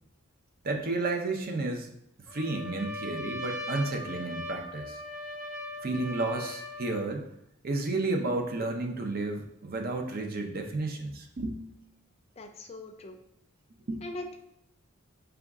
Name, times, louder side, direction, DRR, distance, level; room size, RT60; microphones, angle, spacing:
voice 1, 0.6-1.9 2.3-5.0 5.8-7.3 7.6-11.8 13.9-14.0, right 2 dB, 45° right, 3 dB, 0.6 m, -32 dB
Trumpet, 2.3-7.1, left 1 dB, 5° right, 0.8 m, -39 dB
voice 2, 12.4-13.2 14.0-14.4, left 2 dB, 30° left, 4 dB, 0.4 m, -41 dB
4.9 x 2.3 x 3.5 m, 0.76 s
head